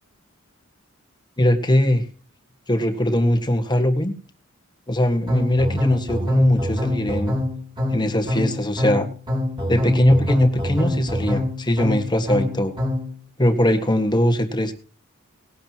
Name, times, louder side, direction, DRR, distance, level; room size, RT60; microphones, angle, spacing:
voice 1, 1.4-2.0 2.7-4.1 4.9-7.3 7.9-9.1 9.7-12.7 13.4-14.7, left 1 dB, 20° left, 8 dB, 1.7 m, -20 dB
sound 1, 5.3-13.1, left 1 dB, 20° right, 4.0 m, -25 dB
19.0 x 12.0 x 3.0 m, 0.40 s
head